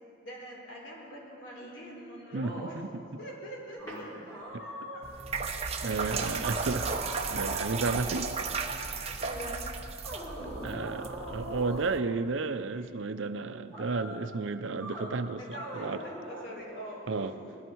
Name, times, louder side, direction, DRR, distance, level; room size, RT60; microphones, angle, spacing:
voice 1, 0.2-2.8 3.2-5.0 5.7-6.2 8.7-9.6 10.3-10.5 15.4-17.6, equal, 70° left, -3 dB, 4.2 m, -44 dB
voice 2, 2.3-3.2 4.5-4.9 5.8-8.3 10.6-15.4 15.7-16.0 17.1-17.3, right 3 dB, 70° right, 10 dB, 0.6 m, -33 dB
sound 1, 3.8-5.3 5.9-6.0 6.4-8.8 10.0-11.9 13.7-14.2 14.8-15.1 15.5-16.5, right 1 dB, 20° left, 4.1 m, -42 dB
sound 2, 5.0-12.0, right 4 dB, 30° right, 0.9 m, -35 dB
20.0 x 14.0 x 4.7 m, 2.6 s
head